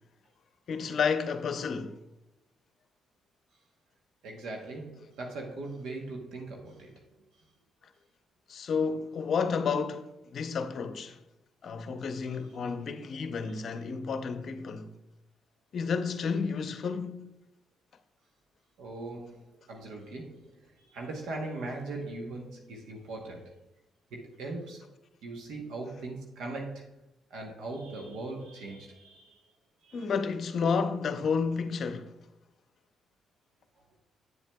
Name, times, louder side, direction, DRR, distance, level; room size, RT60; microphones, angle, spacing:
voice 1, 0.7-2.0 8.5-11.2 11.6-14.9 15.7-17.3 29.9-32.1, left 5 dB, 55° left, 0.6 m, -31 dB
voice 2, 4.2-7.1 13.5-13.6 18.8-23.6 24.1-24.9 25.2-26.9 27.3-29.4 29.8-30.0, right 2 dB, 80° right, 1.0 m, -40 dB
8.2 x 7.3 x 2.3 m
cardioid pair, 90°, 0 cm